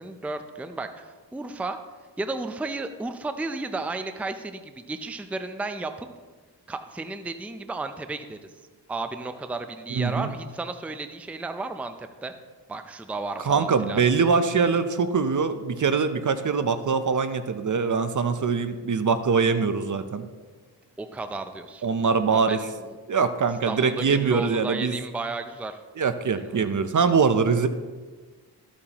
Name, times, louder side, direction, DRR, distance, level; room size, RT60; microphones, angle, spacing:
voice 1, 0.0-1.8 2.2-6.1 6.7-8.5 8.9-12.3 12.7-14.0 21.0-21.9 22.3-22.7 23.7-25.8 26.3-26.7, right 3 dB, 5° right, 8 dB, 0.5 m, -33 dB
voice 2, 9.9-10.3 13.5-20.3 21.8-22.6 23.1-24.9 26.0-27.7, right 5 dB, 45° right, 10 dB, 0.7 m, -23 dB
13.5 x 8.5 x 3.0 m, 1.4 s
wide cardioid pair, 85°, 41 cm